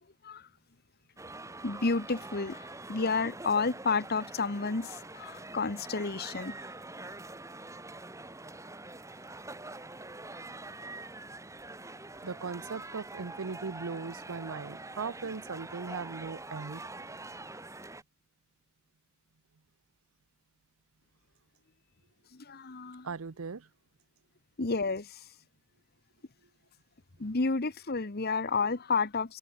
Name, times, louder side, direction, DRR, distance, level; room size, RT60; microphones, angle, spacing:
sound 1, 1.2-18.0, right 2 dB, 15° right, 1.8 m, -45 dB
voice 1, 1.6-6.6 22.3-23.1 24.6-25.2 27.2-29.4, left 4 dB, 45° left, 1.1 m, -31 dB
voice 2, 12.2-16.8 23.0-23.7, right 5 dB, 65° right, 0.7 m, -38 dB
open air
head